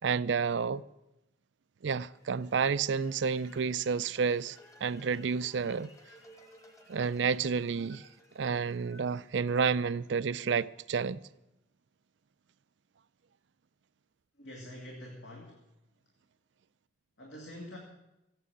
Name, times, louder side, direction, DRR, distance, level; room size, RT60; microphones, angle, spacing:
voice 1, 0.0-0.8 1.8-5.9 6.9-8.1 8.4-11.2, right 5 dB, 75° right, 0.4 m, -30 dB
sound 1, 2.1-10.2, left 1 dB, 15° left, 1.4 m, -58 dB
voice 2, 14.4-15.6 17.2-17.8, left 1 dB, 70° left, 2.2 m, -45 dB
15.0 x 8.9 x 8.3 m
head